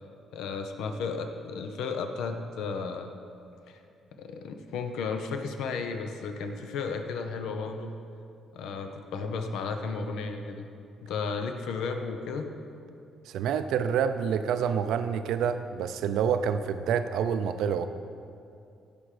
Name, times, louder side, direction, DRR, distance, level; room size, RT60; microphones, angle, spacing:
voice 1, 0.3-3.1 3.7-3.8 4.2-7.9 8.5-10.7 11.0-12.5, left 4 dB, 85° left, 6 dB, 0.8 m, -34 dB
voice 2, 13.3-17.9, right 7 dB, 85° right, 10 dB, 0.5 m, -27 dB
15.5 x 5.1 x 5.0 m, 2.5 s
cardioid pair, 90°, 0 cm